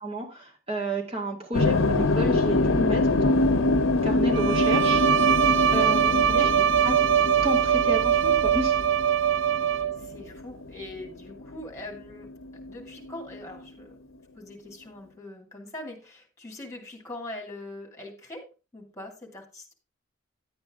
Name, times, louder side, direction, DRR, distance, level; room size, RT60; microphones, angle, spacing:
voice 1, 0.0-5.0 5.7-6.5 6.8-6.9 7.4-8.8, right 1 dB, 30° right, 1 dB, 2.3 m, -31 dB
sound 1, 1.5-11.6 11.9-13.6, left 2 dB, 80° left, 0.8 m, -25 dB
Bowed string instrument, 4.3-10.1, right 9 dB, 65° right, 0.4 m, -22 dB
voice 2, 6.1-6.5 10.0-12.3 12.7-13.9 14.3-18.5 18.7-19.7, left 1 dB, 15° left, 2 dB, 2.5 m, -42 dB
10.5 x 8.7 x 3.7 m, 0.31 s
head